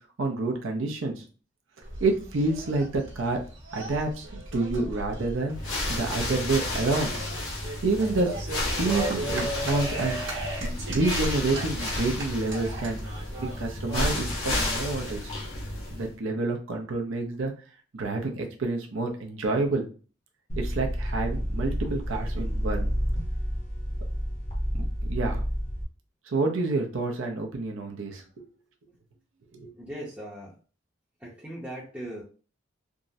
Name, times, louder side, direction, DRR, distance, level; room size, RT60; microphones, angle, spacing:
voice 1, 0.2-1.2 2.0-3.4 3.7-5.6 5.9-7.1 7.8-8.4 8.8-10.2 10.6-13.0 13.4-15.4 15.9-17.5 17.9-19.9 20.6-22.9 24.7-25.5 26.3-28.4 29.5-29.7, right 3 dB, 85° right, 2 dB, 0.6 m, -28 dB
sound 1, 1.8-15.2, right 1 dB, 70° right, 1.1 m, -37 dB
sound 2, 5.5-16.1, left 1 dB, 80° left, 1.4 m, -32 dB
sound 3, 20.5-25.8, equal, 35° left, 0.8 m, -29 dB
voice 2, 29.6-30.6 31.2-32.2, right 1 dB, 5° right, -7 dB, 0.6 m, -39 dB
3.5 x 2.0 x 2.6 m, 0.37 s
head